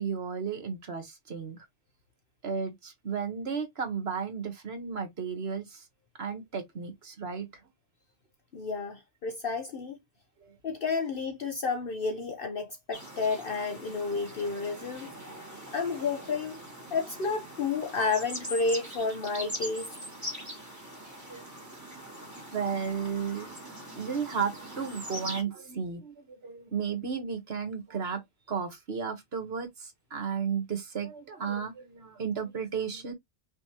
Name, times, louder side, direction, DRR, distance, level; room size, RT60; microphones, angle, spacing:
voice 1, 0.0-1.6 2.4-5.8 6.2-7.5 10.4-10.5 21.3-21.4 22.5-23.5 23.9-28.2 28.5-33.1, right 6 dB, 65° right, 1.6 m, -34 dB
voice 2, 8.5-10.0 10.6-15.1 15.7-19.9, left 4 dB, 55° left, 0.9 m, -31 dB
sound 1, 12.9-25.4, equal, 15° right, 2.2 m, -42 dB
5.5 x 3.2 x 2.9 m
omnidirectional pair, 1.1 m